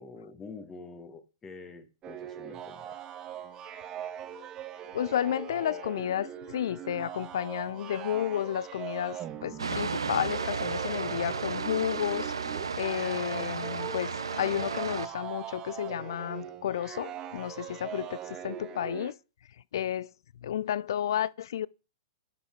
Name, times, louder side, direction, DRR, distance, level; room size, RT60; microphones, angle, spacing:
voice 1, 0.0-3.0, left 4 dB, 20° left, 1.4 m, -46 dB
sound 1, 2.0-19.1, right 9 dB, 30° right, 1.1 m, -41 dB
voice 2, 4.9-12.3 12.8-19.2 19.7-20.1 20.4-21.7, left 10 dB, 65° left, 0.4 m, -32 dB
sound 2, 9.6-15.1, right 5 dB, 80° right, 0.6 m, -33 dB
10.5 x 5.6 x 4.3 m
figure-of-eight pair, 105°, 2 cm